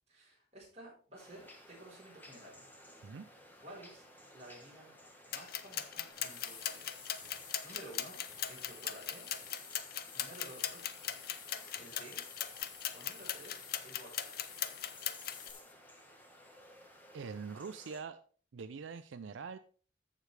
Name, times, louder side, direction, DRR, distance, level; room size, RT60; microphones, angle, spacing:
voice 1, 0.1-2.6 3.6-4.0 4.3-4.9 5.3-6.9 7.4-8.2 8.5-9.3 10.1-10.9 11.4-12.2 12.9-14.4, right 1 dB, 35° right, -4 dB, 4.4 m, -53 dB
sound 1, 1.1-18.0, left 1 dB, 10° left, 1.3 m, -57 dB
sound 2, 5.3-15.5, left 10 dB, 50° left, 0.6 m, -39 dB
sound 3, 6.1-15.7, left 6 dB, 90° left, 2.3 m, -52 dB
voice 2, 17.1-18.2 18.5-19.6, right 5 dB, 75° right, 12 dB, 0.4 m, -43 dB
14.0 x 5.0 x 3.3 m, 0.41 s
head